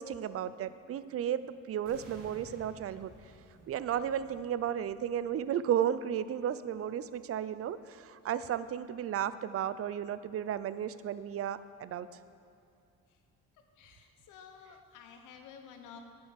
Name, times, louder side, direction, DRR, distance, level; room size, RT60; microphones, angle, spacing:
voice 1, 0.0-3.1 3.7-12.1, right 9 dB, 50° right, 15 dB, 0.5 m, -34 dB
sound 1, 1.9-5.9, right 2 dB, 85° right, 1.8 m, -56 dB
voice 2, 13.8-16.0, left 7 dB, 90° left, 5 dB, 1.2 m, -52 dB
10.5 x 8.0 x 5.1 m, 2.6 s
cardioid pair, 90°, 30 cm